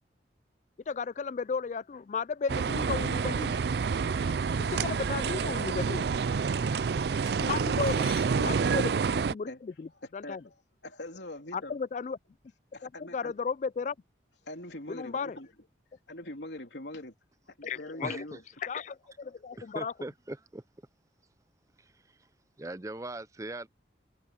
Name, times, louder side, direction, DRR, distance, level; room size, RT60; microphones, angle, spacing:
voice 1, 0.9-3.6 4.6-6.1 7.4-8.1 8.4-10.4 11.5-12.2 13.1-14.0 14.9-15.4 17.6-18.2 18.6-19.9, left 5 dB, 40° left, 0.3 m, -34 dB
sound 1, 2.5-9.3, right 5 dB, 65° right, 0.4 m, -28 dB
sound 2, 3.5-4.6 7.3-8.9, left 9 dB, 60° left, 7.8 m, -51 dB
voice 2, 8.0-8.5 9.5-9.6 10.0-10.5 10.8-11.8 12.7-13.3 14.4-15.5 16.1-17.1 17.5-18.4, left 1 dB, 80° left, 3.4 m, -43 dB
voice 3, 18.0-18.4 19.6-20.6 21.8-22.2 22.6-23.7, right 2 dB, 20° right, 0.5 m, -40 dB
head